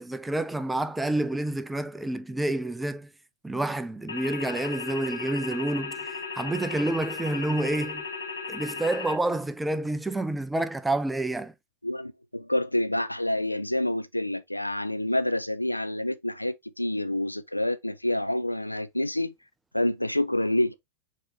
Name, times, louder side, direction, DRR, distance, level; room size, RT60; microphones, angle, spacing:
voice 1, 0.0-3.1 3.4-8.1 8.5-11.5, right 2 dB, 5° right, 0.4 m, -29 dB
sound 1, 4.1-9.2, left 4 dB, 70° left, 1.1 m, -36 dB
voice 2, 11.8-19.3 19.7-20.7, left 1 dB, 85° left, 0.4 m, -28 dB
6.0 x 2.9 x 2.7 m
figure-of-eight pair, 90°, 0 cm